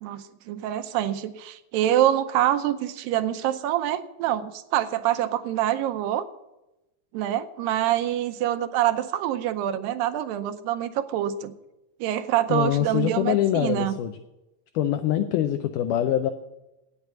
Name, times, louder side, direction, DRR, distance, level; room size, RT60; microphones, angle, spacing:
voice 1, 0.0-6.2 7.1-11.5 12.0-13.9, right 12 dB, 90° right, 10 dB, 2.4 m, -25 dB
voice 2, 12.5-14.2 14.8-16.3, left 11 dB, 80° left, 8 dB, 1.9 m, -24 dB
9.1 x 8.4 x 9.3 m, 0.96 s
omnidirectional pair, 4.0 m